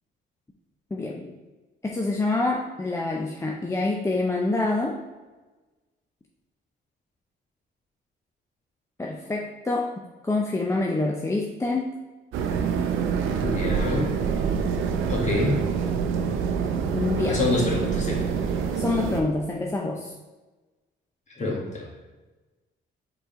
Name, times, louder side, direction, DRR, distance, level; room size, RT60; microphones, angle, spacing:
voice 1, 0.9-1.3 1.8-5.0 9.0-9.9 10.2-11.9 16.9-17.4 18.7-20.1, left 2 dB, 15° left, 0 dB, 0.6 m, -26 dB
sound 1, 12.3-19.2, right 6 dB, 85° right, 0.6 m, -26 dB
voice 2, 13.4-14.2 15.1-15.6 17.3-18.3 21.4-21.9, left 2 dB, 35° left, -2 dB, 1.8 m, -26 dB
4.8 x 4.0 x 5.0 m, 1.2 s
cardioid pair, 90°, 20 cm